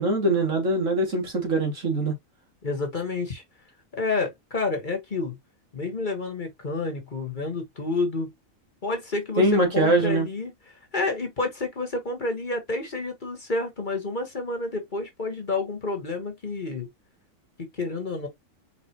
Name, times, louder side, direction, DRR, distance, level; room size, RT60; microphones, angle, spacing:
voice 1, 0.0-2.1 9.4-10.3, right 2 dB, 70° right, 2.5 m, -22 dB
voice 2, 2.6-3.4 3.9-5.3 5.7-8.3 8.8-10.5 10.9-16.9 17.7-18.3, left 3 dB, 40° left, 1.4 m, -29 dB
4.9 x 3.7 x 2.9 m
omnidirectional pair, 1.4 m